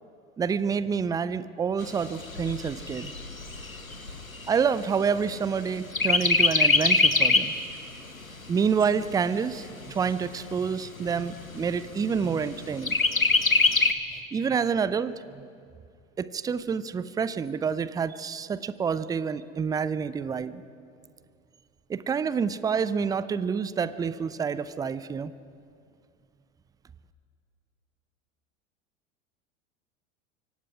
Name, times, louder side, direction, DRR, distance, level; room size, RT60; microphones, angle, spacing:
voice 1, 0.4-3.1 4.5-7.5 8.5-13.0 14.3-15.4 16.2-20.6 21.9-25.3, right 6 dB, 10° right, 16 dB, 0.5 m, -28 dB
Chirp tweet, 1.8-5.6 5.9-7.6 8.1-8.2 8.5-9.5 10.1-10.2 10.5-10.6 11.1-11.6 12.9-13.9, left 3 dB, 90° left, 1.1 m, -23 dB
25.5 x 23.5 x 5.0 m, 2.4 s
figure-of-eight pair, 85°, 40 cm